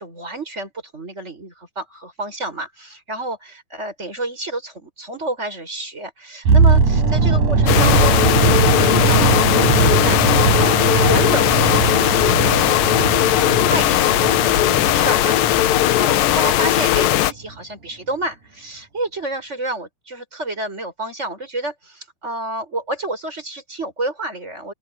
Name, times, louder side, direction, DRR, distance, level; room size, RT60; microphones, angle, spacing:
voice 1, 0.0-24.7, right 2 dB, 15° right, 7.7 m, -30 dB
sound 1, 6.5-16.4 16.7-16.9, right 4 dB, 50° right, 6.1 m, -19 dB
sound 2, 7.7-17.3, left 13 dB, 70° left, 2.3 m, -17 dB
open air
omnidirectional pair, 4.7 m